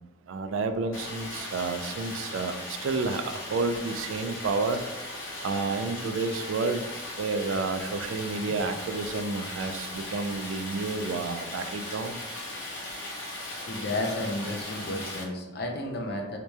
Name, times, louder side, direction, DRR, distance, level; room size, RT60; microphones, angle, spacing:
voice 1, 0.3-4.8 5.4-6.8 7.2-12.2, right 3 dB, 85° right, 9 dB, 0.4 m, -30 dB
Stream, 0.9-15.2, left 1 dB, 80° left, 1.3 m, -38 dB
voice 2, 13.7-16.4, left 1 dB, 55° left, 2 dB, 0.6 m, -32 dB
3.3 x 2.9 x 3.3 m, 1.1 s
head